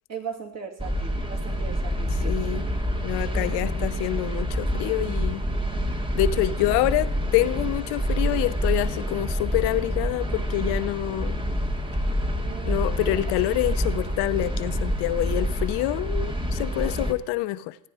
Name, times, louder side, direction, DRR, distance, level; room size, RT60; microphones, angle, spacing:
voice 1, 0.1-2.4 3.3-3.5 12.0-13.2, right 6 dB, 40° right, 2 dB, 2.7 m, -38 dB
sound 1, 0.8-17.1, equal, 10° right, 1.5 m, -27 dB
voice 2, 2.2-2.7 3.0-5.4 6.1-11.4 12.6-17.8, left 15 dB, 75° left, 13 dB, 0.8 m, -26 dB
16.5 x 9.5 x 4.9 m, 0.76 s
supercardioid pair, 90°, 39 cm